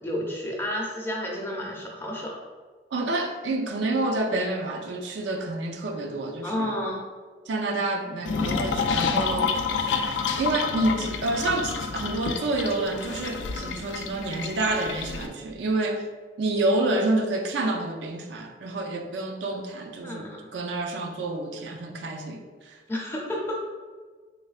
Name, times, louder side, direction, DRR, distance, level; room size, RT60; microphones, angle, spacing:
voice 1, 0.0-2.4 6.4-7.0 20.0-20.5 22.9-23.6, left 1 dB, 15° left, -3 dB, 0.5 m, -31 dB
voice 2, 2.9-6.8 7.5-9.5 10.4-16.0 16.4-22.4 22.7-22.8, right 2 dB, 85° right, 3 dB, 0.4 m, -28 dB
sound 1, 8.2-15.3, left 5 dB, 85° left, 0.3 m, -29 dB
3.4 x 3.2 x 2.4 m, 1.5 s
head